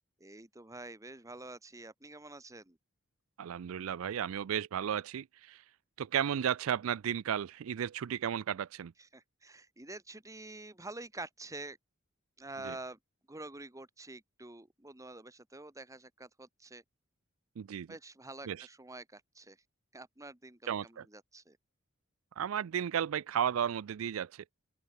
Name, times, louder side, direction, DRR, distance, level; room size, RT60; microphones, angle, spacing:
voice 1, 0.2-2.8 9.0-11.8 12.4-13.0 13.3-16.8 17.9-19.6 19.9-21.6, right 2 dB, 15° right, 1.8 m, -47 dB
voice 2, 3.4-5.6 6.0-8.9 12.6-12.8 17.6-17.9 18.5-18.7 20.7-21.1 22.4-24.4, right 9 dB, 75° right, 0.4 m, -34 dB
open air
head